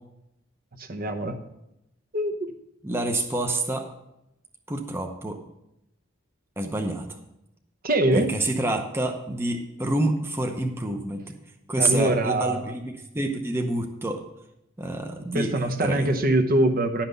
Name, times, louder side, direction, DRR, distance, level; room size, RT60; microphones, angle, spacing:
voice 1, 0.8-1.4 2.1-2.5 7.8-8.3 11.8-12.7 15.3-17.0, right 1 dB, 45° right, 6 dB, 0.9 m, -23 dB
voice 2, 2.8-3.9 4.7-5.4 6.6-7.1 8.1-11.3 11.7-14.2 14.8-15.5 15.8-16.1, right 2 dB, 10° right, 3 dB, 0.7 m, -27 dB
10.5 x 5.9 x 6.8 m, 0.86 s
head